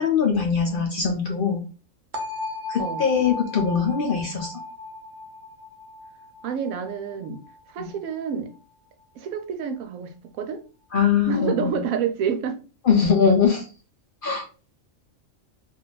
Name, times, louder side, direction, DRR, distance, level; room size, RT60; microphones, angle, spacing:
voice 1, 0.0-1.6 2.7-4.5 7.8-7.9 10.9-11.8 12.8-13.7 14.2-14.5, left 6 dB, 55° left, 0.6 m, -21 dB
sound 1, 2.1-8.0, left 3 dB, 50° right, 0.5 m, -36 dB
voice 2, 6.4-7.4 7.7-8.5 9.2-10.6 11.3-12.6, right 7 dB, 85° right, 1.0 m, -28 dB
2.6 x 2.3 x 3.8 m
omnidirectional pair, 1.4 m